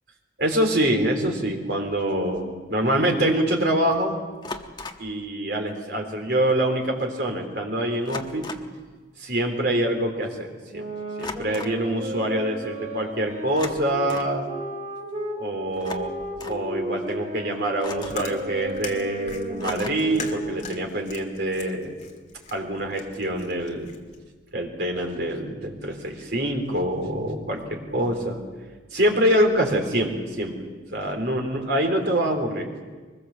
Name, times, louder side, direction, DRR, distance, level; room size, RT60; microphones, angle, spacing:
voice 1, 0.4-4.1 5.0-8.5 9.2-10.9 11.2-14.5 15.4-16.1 16.4-22.0 22.5-23.9 24.5-28.4 28.9-30.6 30.9-32.7, right 1 dB, 60° right, 2 dB, 3.9 m, -25 dB
sound 1, 2.3-2.5 4.4-5.1 6.5-6.6 6.8-7.1 8.1-8.8 11.2-11.8 13.5-14.4 15.7-16.7 17.8-18.3 19.6-20.2, left 3 dB, 25° left, 1.2 m, -38 dB
sound 2, 10.7-15.4 15.8-20.8, right 1 dB, 40° right, 4.1 m, -34 dB
Chewing mastication, 17.7-24.2, left 4 dB, 40° left, 2.3 m, -40 dB
23.5 x 21.0 x 7.4 m, 1.4 s
head